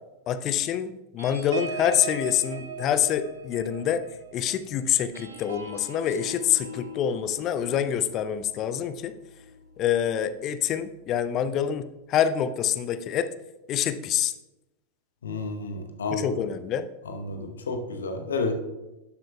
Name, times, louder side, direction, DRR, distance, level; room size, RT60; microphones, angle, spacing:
voice 1, 0.3-4.0 4.3-9.1 9.8-13.3 13.7-14.3 16.1-16.9, left 9 dB, 35° left, 12 dB, 0.4 m, -26 dB
sound 1, 1.2-10.1 10.5-10.8 11.0-11.4, right 2 dB, 70° right, 0.9 m, -40 dB
voice 2, 15.2-16.3 17.0-18.5, left 3 dB, 70° left, 5 dB, 0.9 m, -31 dB
12.0 x 7.3 x 2.3 m, 0.99 s
figure-of-eight pair, 90°, 0 cm